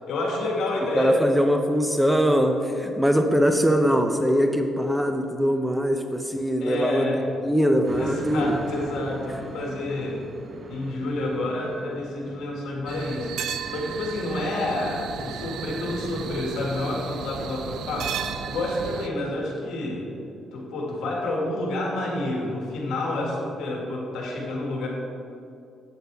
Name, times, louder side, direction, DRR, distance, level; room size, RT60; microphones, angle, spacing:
voice 1, 0.1-1.2 6.6-7.2 8.0-10.2 10.7-13.3 13.7-18.1 18.5-20.1 20.5-24.9, left 2 dB, 75° left, -2 dB, 2.0 m, -29 dB
voice 2, 0.9-7.1 7.4-8.6, equal, 5° right, 5 dB, 0.6 m, -22 dB
sound 1, 7.8-22.1, right 3 dB, 45° right, 0.7 m, -43 dB
sound 2, 12.9-19.1, right 8 dB, 75° right, 0.4 m, -34 dB
8.5 x 8.1 x 3.5 m, 2.6 s
cardioid pair, 90°, 0 cm